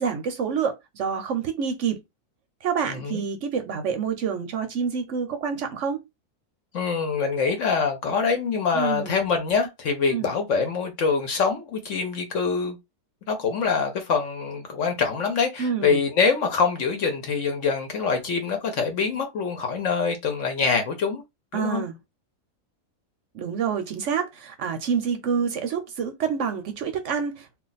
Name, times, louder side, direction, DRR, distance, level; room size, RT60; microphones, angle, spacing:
voice 1, 0.0-2.0 2.6-6.0 8.7-9.1 10.1-10.3 15.6-16.0 21.5-22.0 23.3-27.6, right 6 dB, 65° right, 0.8 m, -27 dB
voice 2, 2.9-3.2 6.7-12.8 13.3-21.2 21.5-21.8, left 5 dB, 60° left, 0.9 m, -25 dB
2.5 x 2.4 x 3.9 m
omnidirectional pair, 1.7 m